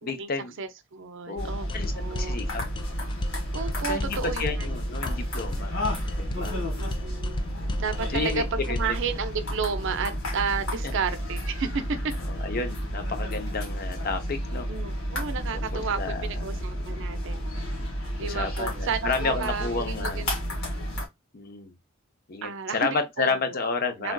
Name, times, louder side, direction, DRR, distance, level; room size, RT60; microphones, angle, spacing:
voice 1, 0.0-0.5 1.3-1.9 2.2-2.6 3.8-5.7 6.2-6.5 7.6-7.8 8.1-9.0 10.8-10.9 12.3-14.7 15.5-16.5 16.9-17.1 18.2-20.3 21.3-21.7 22.3-24.1, left 4 dB, 45° left, 0.7 m, -31 dB
voice 2, 0.6-1.7 1.9-2.4 3.5-4.7 6.4-7.4 7.8-12.1 14.7-17.5 18.2-20.4 22.4-23.3 24.0-24.1, right 5 dB, 65° right, 0.5 m, -32 dB
sound 1, 1.4-21.1, equal, 80° left, 1.6 m, -31 dB
sound 2, 1.7-9.1, left 1 dB, 25° left, 0.3 m, -35 dB
3.4 x 2.5 x 2.2 m
head